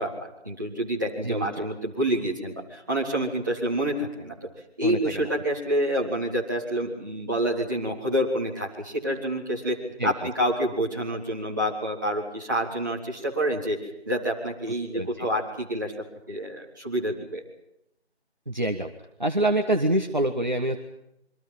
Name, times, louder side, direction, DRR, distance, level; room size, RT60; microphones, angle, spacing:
voice 1, 0.0-4.4 4.8-9.8 10.0-13.8 14.1-15.9 16.3-17.4, equal, 15° right, -6 dB, 3.5 m, -28 dB
voice 2, 4.8-5.3 10.0-10.1 14.9-15.3 18.5-18.9 19.2-20.8, right 1 dB, 40° right, 4 dB, 1.6 m, -26 dB
28.0 x 24.5 x 5.7 m, 0.82 s
figure-of-eight pair, 175°, 34 cm